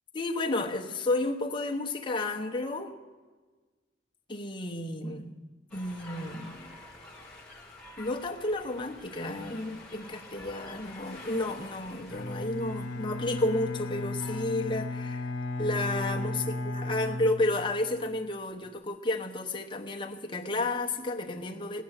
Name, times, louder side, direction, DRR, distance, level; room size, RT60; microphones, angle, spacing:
voice 1, 0.1-2.9 4.3-5.3 5.7-6.8 8.0-15.3 15.6-16.4 16.7-21.8, left 2 dB, 25° left, 2 dB, 1.0 m, -32 dB
sound 1, 5.7-14.4, left 2 dB, 5° left, 1.6 m, -49 dB
Bowed string instrument, 12.1-18.1, left 2 dB, 75° left, 1.3 m, -35 dB
16.5 x 10.0 x 6.6 m, 1.4 s
head